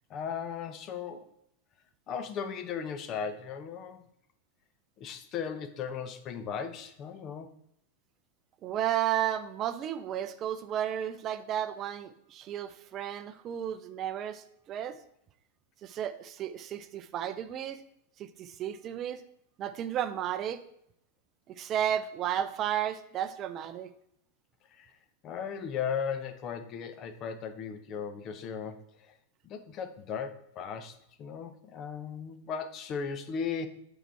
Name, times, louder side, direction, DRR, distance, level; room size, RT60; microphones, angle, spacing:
voice 1, 0.1-1.2 2.1-4.0 5.0-7.5 24.7-24.9 25.2-29.1 29.4-33.7, left 6 dB, 35° left, 11 dB, 0.7 m, -37 dB
voice 2, 8.6-15.0 15.8-17.8 18.2-19.2 19.6-20.6 21.5-23.9, right 10 dB, 30° right, 11 dB, 0.5 m, -33 dB
9.0 x 4.8 x 4.4 m, 0.72 s
figure-of-eight pair, 90°, 0 cm